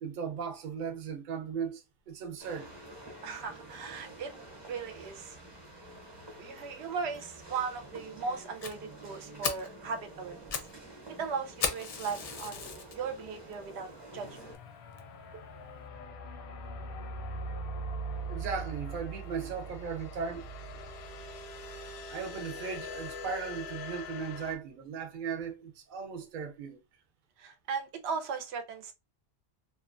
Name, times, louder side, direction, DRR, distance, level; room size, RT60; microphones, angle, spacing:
voice 1, 0.0-2.7 18.3-20.5 21.7-26.8, right 6 dB, 60° right, 0.7 m, -37 dB
sound 1, 2.4-14.6, right 1 dB, 30° right, 0.8 m, -49 dB
voice 2, 3.2-4.3 4.7-5.4 6.4-10.6 11.2-14.3 27.4-28.9, right 5 dB, 85° right, 0.9 m, -37 dB
Fire, 8.6-8.7 9.1-9.2 9.4-9.7 10.2-10.7 11.0-11.1 11.6-12.9 13.5-13.6 14.2-14.3 14.5-14.6 15.0-15.1, left 5 dB, 50° left, 0.5 m, -35 dB
sound 2, 14.1-24.6, right 1 dB, 90° left, 0.9 m, -41 dB
2.7 x 2.1 x 2.4 m
omnidirectional pair, 1.1 m